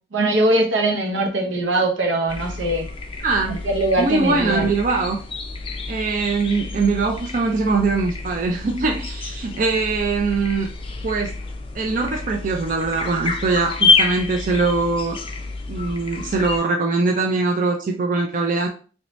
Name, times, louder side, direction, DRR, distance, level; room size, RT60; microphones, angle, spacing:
voice 1, 0.1-2.9 3.5-4.7, right 1 dB, 80° right, 3 dB, 0.8 m, -21 dB
sound 1, 2.3-16.6, left 3 dB, 30° left, 0.4 m, -28 dB
voice 2, 3.2-3.6 4.0-5.2 5.9-10.7 11.0-11.3 11.7-15.2 15.7-18.7, right 3 dB, 45° right, 3 dB, 0.4 m, -22 dB
3.1 x 2.7 x 3.1 m, 0.38 s
head